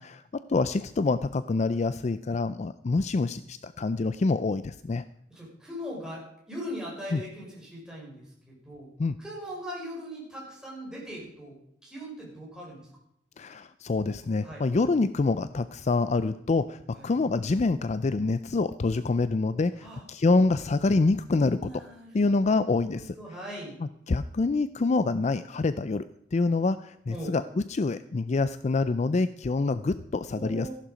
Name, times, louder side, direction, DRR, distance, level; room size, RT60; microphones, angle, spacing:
voice 1, 0.0-5.0 7.1-7.2 9.0-9.1 13.4-21.6 22.1-23.1 24.1-26.0 26.3-30.7, left 3 dB, 40° left, 14 dB, 0.4 m, -26 dB
voice 2, 5.3-8.9 9.2-11.6 11.8-12.9 14.4-14.6 16.9-17.1 19.7-20.0 21.4-22.3 22.8-23.8 27.1-27.3 30.3-30.7, equal, 5° right, -5 dB, 5.6 m, -40 dB
14.5 x 11.0 x 5.1 m, 0.73 s
head